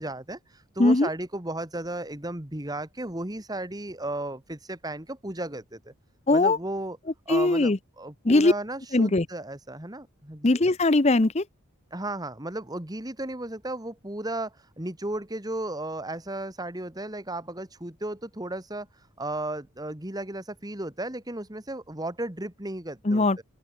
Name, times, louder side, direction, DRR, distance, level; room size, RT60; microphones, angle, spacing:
voice 1, 0.0-5.9 6.3-7.0 7.3-10.6 11.9-23.4, right 1 dB, 15° right, 1.9 m, -34 dB
voice 2, 6.3-6.6 7.3-7.8 8.2-8.5 8.9-9.3 10.4-11.4 23.0-23.4, left 2 dB, 30° left, 0.8 m, -20 dB
open air
head